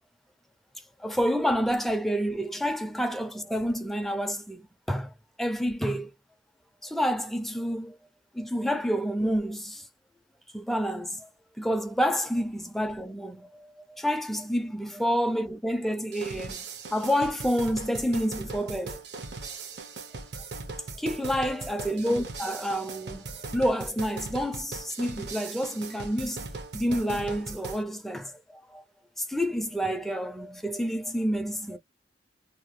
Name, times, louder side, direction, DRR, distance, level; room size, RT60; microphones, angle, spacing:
voice 1, 1.0-5.1 5.4-6.1 6.8-8.0 8.3-9.9 10.5-11.3 11.6-16.6 16.9-19.0 21.0-26.5 26.7-28.8 29.2-31.8, equal, ahead, 0.3 m, -29 dB
sound 1, 16.1-27.8, right 3 dB, 65° right, 0.7 m, -39 dB
2.8 x 2.2 x 3.0 m
head